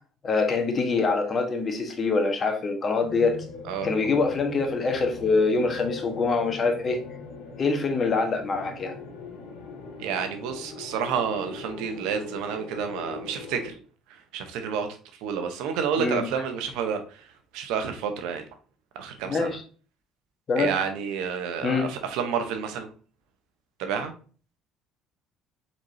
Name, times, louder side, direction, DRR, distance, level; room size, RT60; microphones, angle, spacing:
voice 1, 0.2-3.4 3.8-7.0 7.6-9.0 16.0-16.3 19.3-19.6 20.5-20.7 21.6-21.9, left 4 dB, 40° left, 1.3 m, -24 dB
sound 1, 3.0-13.7, left 4 dB, 70° left, 1.3 m, -40 dB
voice 2, 10.0-13.8 14.1-18.5 18.9-19.5 20.6-22.9 23.8-24.1, right 7 dB, 75° right, 0.9 m, -30 dB
4.8 x 4.1 x 2.7 m
hypercardioid pair, 70°, 0 cm